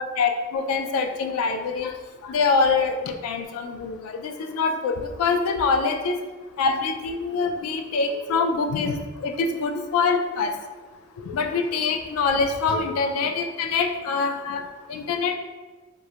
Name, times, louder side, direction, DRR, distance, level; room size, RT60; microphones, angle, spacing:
voice 1, 0.2-1.9 2.2-6.2 6.6-10.5 11.2-14.6 14.9-15.3, left 4 dB, 90° left, 10 dB, 0.3 m, -24 dB
2.3 x 2.1 x 2.7 m, 1.3 s
head